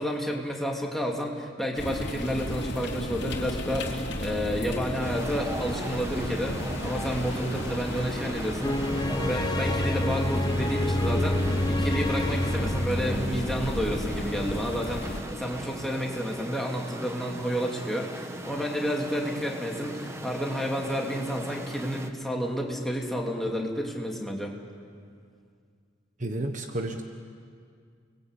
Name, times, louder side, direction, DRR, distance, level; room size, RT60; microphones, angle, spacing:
voice 1, 0.0-24.5, equal, ahead, -1 dB, 2.9 m, -30 dB
sound 1, 1.7-15.2, equal, 60° left, 3.2 m, -34 dB
sound 2, 5.0-22.1, right 1 dB, 15° right, 1.4 m, -38 dB
sound 3, 8.6-13.8, left 1 dB, 20° left, 0.8 m, -28 dB
voice 2, 26.2-27.0, right 1 dB, 40° right, 5 dB, 1.3 m, -31 dB
29.5 x 21.5 x 8.4 m, 2.2 s
head